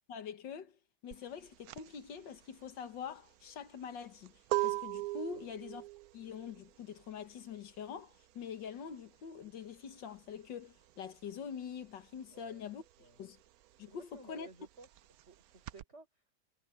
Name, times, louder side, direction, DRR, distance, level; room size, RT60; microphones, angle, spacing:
voice 1, 0.1-0.8 1.0-4.3 4.6-5.9 6.1-12.8 13.2-13.4 13.8-14.5, left 7 dB, 75° left, 2.0 m, -45 dB
sound 1, 1.1-11.3 11.6-15.8, right 19 dB, 70° right, 0.9 m, -40 dB
voice 2, 12.3-12.7 13.0-13.2 13.9-14.9 15.3-16.4, right 3 dB, 35° right, 6.6 m, -56 dB
omnidirectional pair, 2.0 m